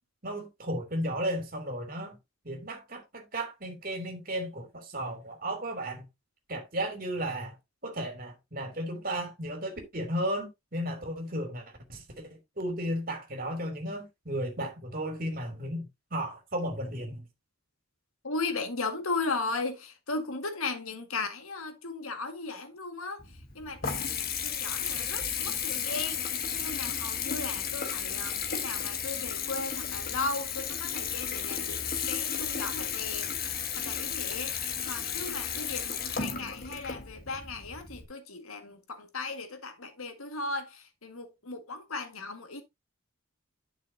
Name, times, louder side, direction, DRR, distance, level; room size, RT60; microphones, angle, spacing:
voice 1, 0.2-2.1 2.4-6.0 6.5-7.5 7.8-11.6 11.9-12.3 12.6-17.2, right 1 dB, 40° right, 3.1 m, -34 dB
voice 2, 18.2-23.2 23.6-26.2 26.5-33.3 33.8-34.5 34.9-42.6, left 3 dB, 80° left, 1.9 m, -36 dB
Water tap faucet / Bathtub (filling or washing) / Trickle dribble, 23.2-38.0, left 7 dB, 45° left, 1.4 m, -33 dB
11.0 x 6.2 x 2.8 m
head